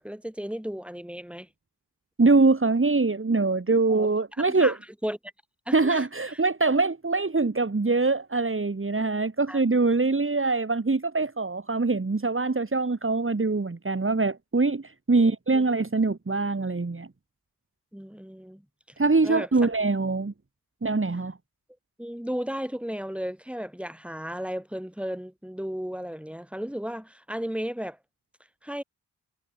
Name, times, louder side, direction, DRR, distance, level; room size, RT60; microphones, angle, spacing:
voice 1, 0.0-1.5 3.9-4.1 4.5-5.2 5.7-6.4 9.5-9.6 15.2-15.6 17.9-18.6 19.2-19.7 22.0-28.0 28.6-28.8, equal, 5° right, 7.0 m, -34 dB
voice 2, 2.2-4.7 5.7-17.1 19.0-20.3 20.8-21.4, right 3 dB, 30° right, 3.6 m, -23 dB
cardioid pair, 60°, 42 cm